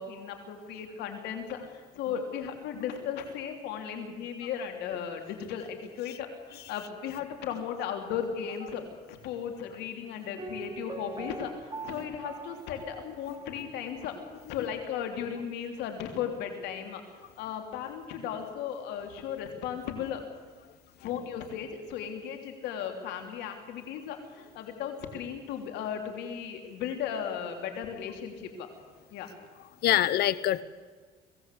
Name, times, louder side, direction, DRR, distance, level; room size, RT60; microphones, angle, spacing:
voice 1, 0.0-8.8 9.1-11.5 11.8-17.0 17.4-20.2 21.0-28.7 29.1-29.3, left 8 dB, 85° left, 5 dB, 3.3 m, -36 dB
Piano, 10.4-14.2 14.4-14.5, right 3 dB, 25° right, 1.3 m, -43 dB
voice 2, 29.8-30.6, left 13 dB, 70° left, 17 dB, 0.9 m, -26 dB
23.0 x 17.0 x 8.4 m, 1.5 s
cardioid pair, 110°, 17 cm